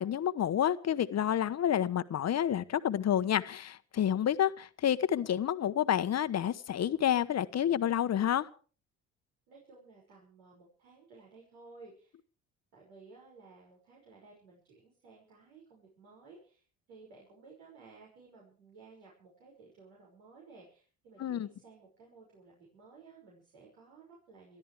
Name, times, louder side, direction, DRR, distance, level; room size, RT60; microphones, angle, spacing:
voice 1, 0.0-8.5 21.2-21.5, left 10 dB, 40° left, 14 dB, 1.1 m, -29 dB
voice 2, 9.5-12.2 12.7-16.6 16.9-24.6, right 4 dB, 75° right, -3 dB, 5.9 m, -56 dB
27.5 x 13.0 x 3.4 m, 0.40 s
hypercardioid pair, 60°, 40 cm